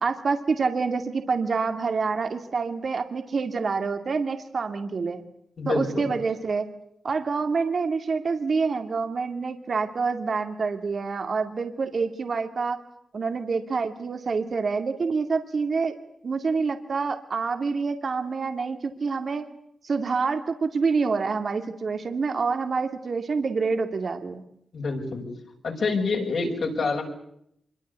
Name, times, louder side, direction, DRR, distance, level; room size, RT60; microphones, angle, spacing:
voice 1, 0.0-5.2 5.7-6.7 7.0-12.8 13.1-15.9 16.2-19.4 19.8-24.4, right 4 dB, 50° right, 7 dB, 2.3 m, -27 dB
voice 2, 5.6-6.1 24.7-25.3 25.6-27.0, left 3 dB, 60° left, 1 dB, 6.5 m, -27 dB
25.5 x 23.0 x 8.3 m, 0.73 s
wide cardioid pair, 105°, 0 cm